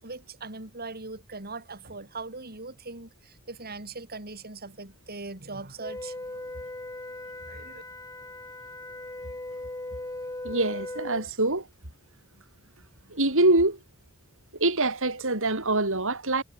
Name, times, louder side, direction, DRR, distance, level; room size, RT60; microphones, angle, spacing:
voice 1, 0.0-6.7 7.5-7.8, right 3 dB, 45° right, 6.1 m, -40 dB
Wind instrument woodwind instrument, 5.8-11.3, left 1 dB, 15° left, 3.8 m, -38 dB
voice 2, 10.4-11.7 13.1-13.8 14.6-16.4, right 2 dB, 65° right, 7.2 m, -24 dB
head